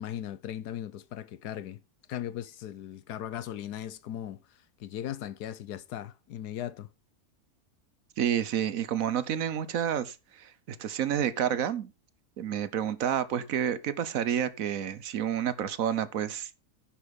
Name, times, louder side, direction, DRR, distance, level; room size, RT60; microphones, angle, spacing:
voice 1, 0.0-1.8 2.1-6.9, left 11 dB, 90° left, 1.4 m, -38 dB
voice 2, 8.2-11.9 12.4-16.6, right 9 dB, 65° right, 1.2 m, -29 dB
10.5 x 7.3 x 5.2 m
omnidirectional pair, 1.6 m